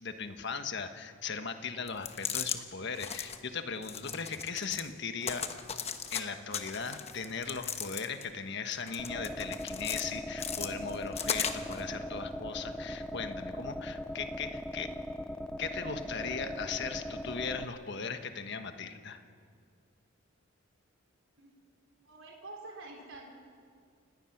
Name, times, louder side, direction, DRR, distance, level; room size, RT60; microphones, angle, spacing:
voice 1, 0.0-5.4 6.1-14.9 15.6-19.2, left 5 dB, 60° left, 8 dB, 1.3 m, -38 dB
sound 1, 1.9-2.6 2.9-3.4 3.8-4.9 5.2-6.2 6.5-8.3 8.7-10.0 10.4-11.8, left 7 dB, 30° left, 1.1 m, -37 dB
sound 2, 9.0-17.6, equal, 5° left, 0.4 m, -39 dB
voice 2, 22.0-23.2, right 2 dB, 75° right, 0 dB, 4.3 m, -47 dB
30.0 x 17.5 x 6.0 m, 2.2 s
head